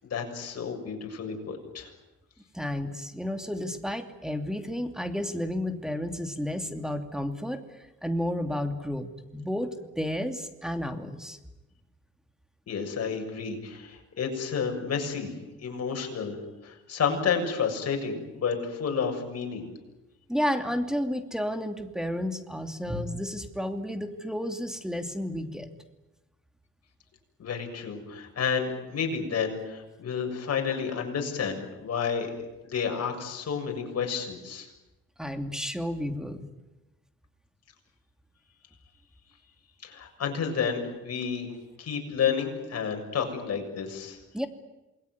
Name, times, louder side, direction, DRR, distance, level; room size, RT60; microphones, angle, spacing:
voice 1, 0.0-1.9 12.7-15.3 15.6-19.7 27.4-32.3 32.6-34.7 39.8-41.5 41.8-44.2, left 6 dB, 55° left, 3 dB, 7.0 m, -30 dB
voice 2, 2.5-7.6 8.0-9.1 9.3-11.4 20.3-25.7 35.2-36.5 44.3-44.5, equal, ahead, 7 dB, 2.8 m, -31 dB
27.5 x 21.5 x 9.7 m, 1.0 s
cardioid pair, 90°, 30 cm